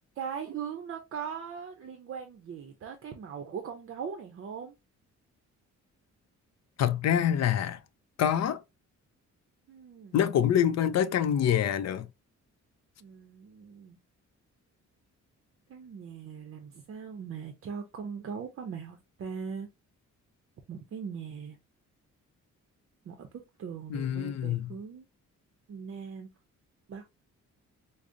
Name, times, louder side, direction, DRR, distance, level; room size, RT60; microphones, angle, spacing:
voice 1, 0.2-4.7 9.7-10.2 13.0-14.0 15.7-19.7 20.7-21.6 23.1-23.3 23.6-25.0 25.7-26.3 26.9-27.0, right 7 dB, 45° right, 0.5 m, -40 dB
voice 2, 6.8-7.8 8.2-8.6 10.1-12.1 23.9-24.7, left 9 dB, 60° left, 0.5 m, -26 dB
4.8 x 2.0 x 2.6 m
cardioid pair, 135°, 30 cm